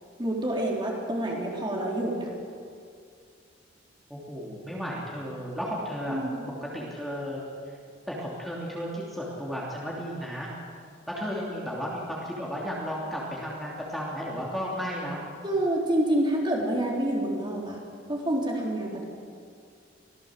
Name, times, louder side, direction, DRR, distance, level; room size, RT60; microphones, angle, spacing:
voice 1, 0.2-2.3 6.1-6.4 15.4-17.8 18.1-19.0, right 1 dB, 25° right, -2 dB, 3.7 m, -27 dB
voice 2, 4.1-6.2 6.6-7.7 8.1-10.5 11.1-15.2 18.8-18.9, equal, ahead, -5 dB, 3.0 m, -34 dB
24.5 x 17.0 x 7.6 m, 2.3 s
head